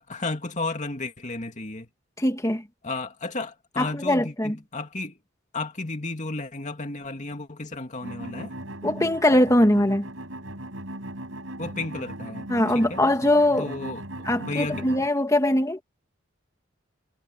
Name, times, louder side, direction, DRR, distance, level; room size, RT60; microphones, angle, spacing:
voice 1, 0.1-1.9 2.8-5.2 5.5-8.5 11.6-12.5 12.7-13.0 13.6-14.0 14.4-14.8, left 3 dB, 35° left, 2.5 m, -33 dB
voice 2, 2.2-2.6 3.8-4.6 8.8-10.0 12.5-13.7 14.3-15.8, left 1 dB, 15° left, 2.5 m, -21 dB
sound 1, 8.0-15.1, right 1 dB, 75° right, 6.8 m, -37 dB
head